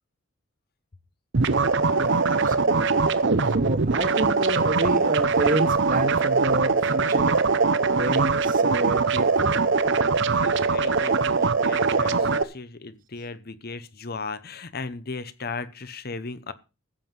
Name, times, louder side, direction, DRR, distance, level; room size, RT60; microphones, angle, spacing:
sound 1, 1.3-12.4, right 4 dB, 55° right, 0.8 m, -22 dB
voice 1, 2.0-3.1 3.5-7.4 8.0-9.7, right 2 dB, 40° right, 1.5 m, -29 dB
voice 2, 10.3-16.5, left 4 dB, 45° left, 0.8 m, -36 dB
14.5 x 7.7 x 5.5 m
head